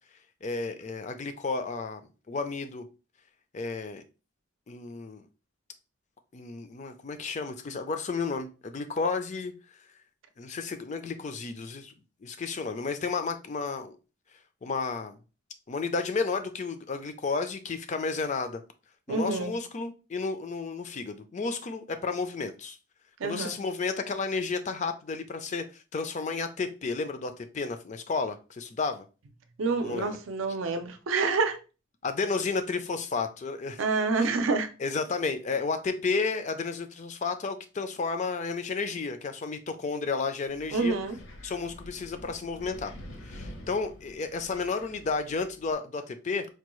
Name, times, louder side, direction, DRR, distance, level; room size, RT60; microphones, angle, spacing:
voice 1, 0.4-2.0 2.3-2.8 3.5-4.0 4.7-5.2 6.3-9.5 10.4-11.9 12.2-14.0 14.6-15.2 15.7-18.6 19.1-22.8 23.2-29.0 29.8-30.2 32.0-33.8 34.1-34.2 34.8-40.9 41.4-42.9 43.2-46.5, left 4 dB, 35° left, 0.4 m, -32 dB
voice 2, 19.1-19.5 23.2-23.6 29.6-31.6 33.8-34.7 40.7-41.2, right 4 dB, 75° right, 0.5 m, -27 dB
Wind, 40.5-45.7, left 1 dB, 70° left, 0.8 m, -47 dB
4.5 x 2.3 x 3.0 m
head